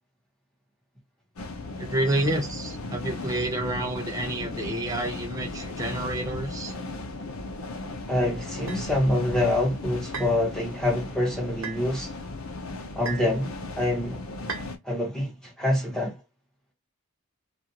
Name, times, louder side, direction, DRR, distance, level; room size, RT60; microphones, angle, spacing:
sound 1, 1.4-14.8, left 2 dB, 85° left, 0.6 m, -36 dB
voice 1, 1.8-6.7, right 1 dB, 15° right, 0.5 m, -29 dB
voice 2, 8.1-12.1 12.9-13.5 13.8-14.2 14.8-16.2, left 1 dB, 5° left, 1.1 m, -26 dB
sound 2, 8.7-8.9 10.1-10.4 11.6-11.8 13.0-13.4 14.5-14.7, right 5 dB, 70° right, 0.9 m, -35 dB
2.5 x 2.4 x 2.8 m
head